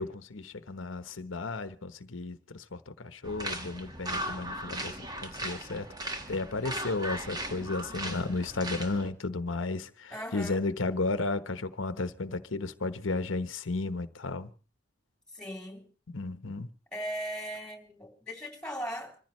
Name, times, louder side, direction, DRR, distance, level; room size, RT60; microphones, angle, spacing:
voice 1, 0.0-14.5 16.1-16.7, left 3 dB, 85° left, 1.0 m, -34 dB
sound 1, 3.2-9.1, right 1 dB, 20° right, 1.6 m, -37 dB
voice 2, 10.1-10.6 15.3-15.9 16.9-19.2, equal, 5° left, 3.4 m, -38 dB
25.5 x 15.0 x 3.2 m
head